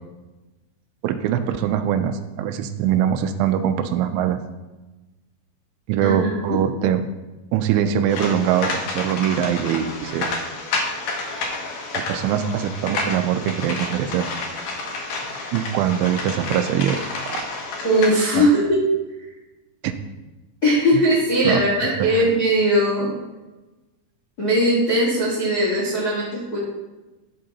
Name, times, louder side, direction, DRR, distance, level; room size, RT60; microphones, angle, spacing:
voice 1, 1.0-4.4 5.9-7.0 7.5-10.3 11.9-14.3 15.5-17.0 17.3-17.4 18.4-18.5 19.8-19.9 21.4-21.6 22.0-22.2, right 9 dB, 85° right, 8 dB, 2.9 m, -22 dB
voice 2, 6.0-6.6 17.8-18.8 20.6-23.1 24.4-26.6, equal, 55° left, -6 dB, 1.0 m, -19 dB
sound 1, 8.1-18.1, left 3 dB, 80° left, 1.8 m, -30 dB
11.0 x 6.6 x 4.1 m, 1.1 s
omnidirectional pair, 5.7 m